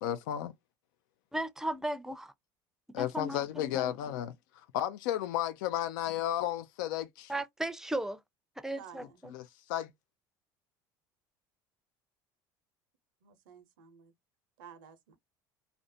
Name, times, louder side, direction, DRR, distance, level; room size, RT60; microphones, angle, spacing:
voice 1, 0.0-0.5 2.9-7.3 9.3-9.9, left 12 dB, 80° left, 0.4 m, -33 dB
voice 2, 1.3-2.3 3.0-3.9 7.3-8.2 8.6-9.3, right 1 dB, 5° right, 0.4 m, -36 dB
voice 3, 8.8-9.2 13.2-14.1 14.6-15.2, right 7 dB, 85° right, 0.7 m, -53 dB
2.5 x 2.1 x 2.5 m
supercardioid pair, 85°, 11 cm